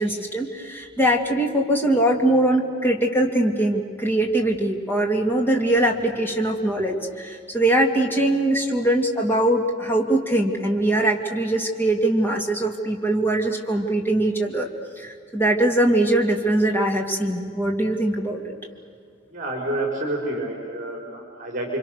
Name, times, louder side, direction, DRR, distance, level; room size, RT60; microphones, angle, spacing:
voice 1, 0.0-14.7 15.0-18.5, right 1 dB, 10° left, 1 dB, 2.9 m, -22 dB
voice 2, 19.3-21.8, right 1 dB, 45° right, 0 dB, 4.9 m, -28 dB
30.0 x 25.0 x 6.7 m, 2.3 s
head